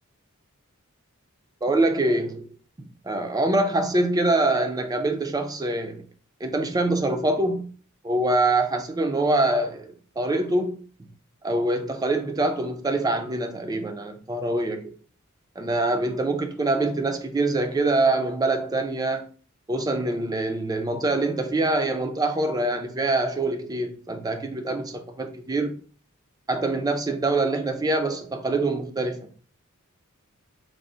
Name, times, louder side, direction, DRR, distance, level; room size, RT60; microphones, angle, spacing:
voice 1, 1.6-2.5 2.8-6.0 6.4-7.6 8.0-10.8 11.4-14.8 15.6-19.3 19.7-25.8 26.5-29.3, right 2 dB, 20° right, 0.4 m, -24 dB
3.5 x 2.0 x 3.7 m
head